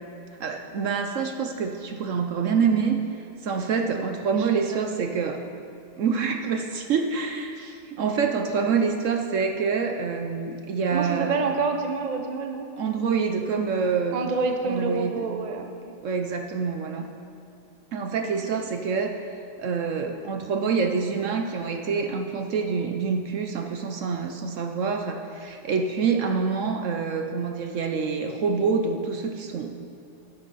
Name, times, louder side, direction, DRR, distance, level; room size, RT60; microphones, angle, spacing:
voice 1, 0.4-5.4 6.0-11.4 12.8-14.3 14.6-15.2 16.0-17.1 17.9-19.2 19.6-29.8, right 5 dB, 60° right, 5 dB, 0.9 m, -26 dB
voice 2, 4.3-5.1 10.9-12.7 14.1-16.0 18.5-18.6, right 4 dB, 45° right, 4 dB, 0.5 m, -28 dB
12.5 x 10.0 x 4.1 m, 2.6 s
omnidirectional pair, 1.8 m